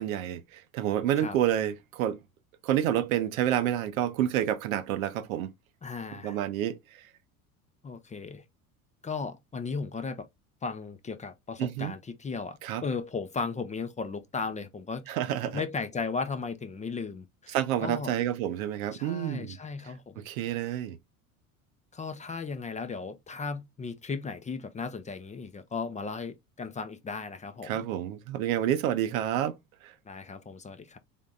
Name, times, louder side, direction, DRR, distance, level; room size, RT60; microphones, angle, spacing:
voice 1, 0.0-2.2 2.6-5.5 6.1-7.1 11.6-11.9 12.6-12.8 15.1-15.6 17.5-19.6 19.8-21.0 27.6-29.9, right 11 dB, 70° right, 0.7 m, -29 dB
voice 2, 5.8-6.4 7.8-8.4 9.0-10.3 10.6-15.0 15.5-17.6 17.8-18.2 18.9-20.2 21.9-27.8 30.1-31.0, left 4 dB, 15° left, 0.6 m, -36 dB
3.7 x 3.6 x 3.8 m
hypercardioid pair, 75°, 43 cm